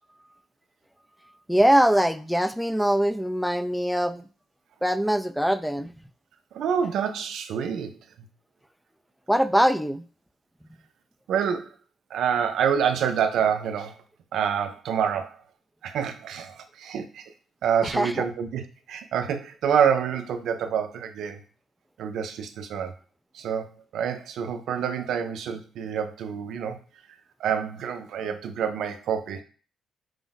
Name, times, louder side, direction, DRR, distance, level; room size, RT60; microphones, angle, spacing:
voice 1, 1.5-4.2 4.8-5.9 9.3-10.0 17.8-18.3, equal, ahead, 9 dB, 0.3 m, -22 dB
voice 2, 6.5-8.0 11.3-11.7 12.1-14.0 14.3-15.4 15.8-17.3 17.6-18.6 18.9-21.4 22.0-22.9 23.3-26.8 27.4-29.4, right 8 dB, 75° right, 8 dB, 0.5 m, -27 dB
4.9 x 2.0 x 3.9 m, 0.38 s
cardioid pair, 90°, 0 cm